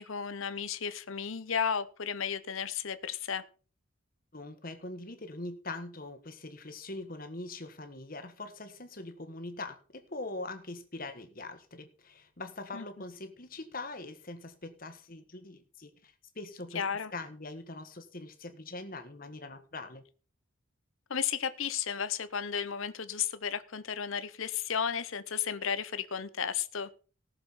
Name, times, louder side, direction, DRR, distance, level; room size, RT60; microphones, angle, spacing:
voice 1, 0.0-3.4 12.7-12.8 16.7-17.1 21.1-26.9, left 7 dB, 70° left, 13 dB, 0.9 m, -33 dB
voice 2, 4.3-16.8 17.1-20.0, left 2 dB, 40° left, 8 dB, 1.6 m, -42 dB
18.5 x 6.9 x 4.2 m, 0.38 s
head